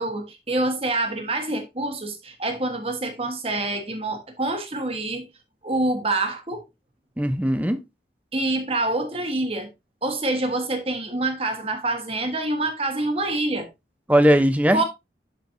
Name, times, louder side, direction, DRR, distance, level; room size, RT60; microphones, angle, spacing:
voice 1, 0.0-5.3 5.6-6.6 8.3-9.7 10.0-13.7 14.7-14.8, right 2 dB, 30° right, 1.4 m, -26 dB
voice 2, 7.2-7.8 14.1-14.8, equal, 10° right, 0.7 m, -19 dB
11.5 x 4.5 x 2.7 m
head